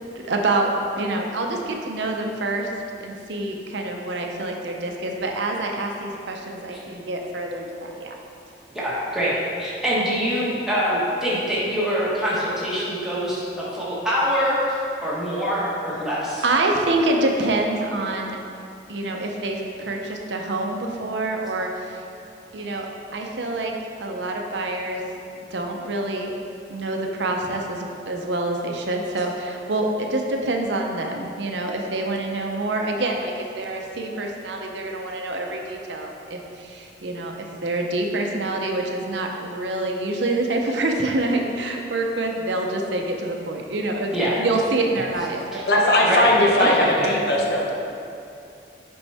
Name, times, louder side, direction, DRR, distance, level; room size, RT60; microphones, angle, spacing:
voice 1, 0.2-0.7 1.0-2.7 3.0-8.2 15.9-16.1 16.4-18.4 18.9-22.0 22.5-23.7 24.0-25.0 25.4-26.3 26.7-45.7, right 2 dB, 75° right, 1 dB, 0.7 m, -26 dB
voice 2, 8.7-9.3 9.6-16.4 44.1-44.3 45.5-45.6 46.0-46.3 46.6-47.1, equal, 5° right, -9 dB, 1.3 m, -24 dB
voice 3, 45.7-47.7, left 1 dB, 60° left, -1 dB, 0.9 m, -19 dB
6.9 x 5.4 x 3.4 m, 2.5 s
head